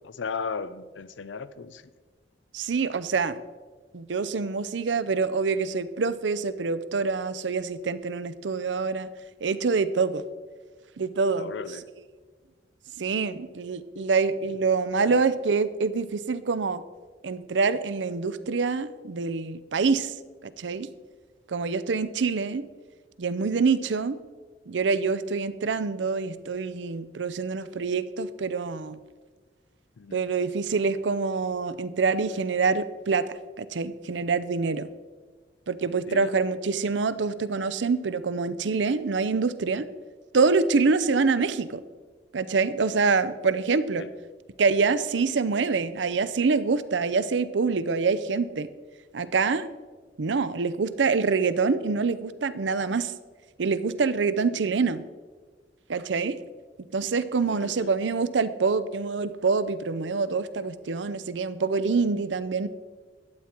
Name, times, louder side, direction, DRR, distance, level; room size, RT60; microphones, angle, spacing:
voice 1, 0.0-1.8 4.4-4.5 11.4-11.9 15.0-15.2 30.0-30.2 36.1-36.4 44.0-44.1 54.5-54.6 57.5-57.9, left 5 dB, 90° left, 15 dB, 0.5 m, -36 dB
voice 2, 2.5-3.4 3.9-9.1 9.4-10.2 11.0-11.5 13.0-16.8 17.2-20.1 20.6-20.9 21.5-22.7 23.2-24.2 24.7-29.0 30.1-33.2 33.6-34.9 35.7-39.9 40.3-41.8 42.3-44.0 44.6-48.7 49.1-49.7 50.2-53.1 53.6-55.0 55.9-56.4 56.9-62.7, right 4 dB, 75° right, 14 dB, 0.6 m, -26 dB
12.0 x 8.8 x 4.4 m, 1.4 s
head